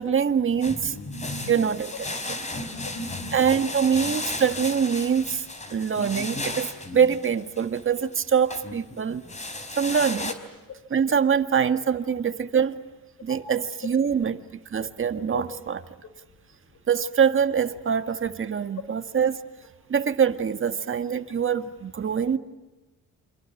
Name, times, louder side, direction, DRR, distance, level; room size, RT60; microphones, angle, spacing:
voice 1, 0.0-1.0 1.5-2.4 3.3-5.5 5.7-9.2 9.8-10.3 10.9-12.8 13.2-14.4 14.7-15.8 16.9-19.4 19.9-22.4, right 7 dB, 45° right, 8 dB, 1.9 m, -24 dB
sound 1, 0.6-8.2 8.5-10.3, left 2 dB, 25° left, 4.6 m, -35 dB
voice 2, 0.9-1.5 2.5-3.4 15.3-15.4, left 2 dB, 60° left, 11 dB, 6.4 m, -35 dB
28.5 x 27.5 x 7.3 m, 1.1 s
cardioid pair, 90°, 30 cm